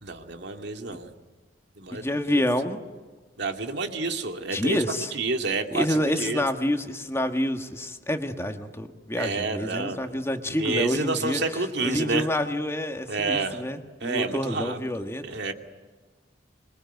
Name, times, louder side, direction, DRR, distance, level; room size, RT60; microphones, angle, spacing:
voice 1, 0.0-1.1 1.8-2.4 3.4-4.8 5.1-6.4 9.1-10.1 10.4-12.3 13.1-13.6 14.0-14.8 15.2-15.5, right 3 dB, 65° right, 5 dB, 2.5 m, -29 dB
voice 2, 1.9-2.8 4.5-5.1 5.7-15.2, left 1 dB, 15° left, 6 dB, 1.6 m, -28 dB
26.0 x 22.5 x 9.3 m, 1.4 s
head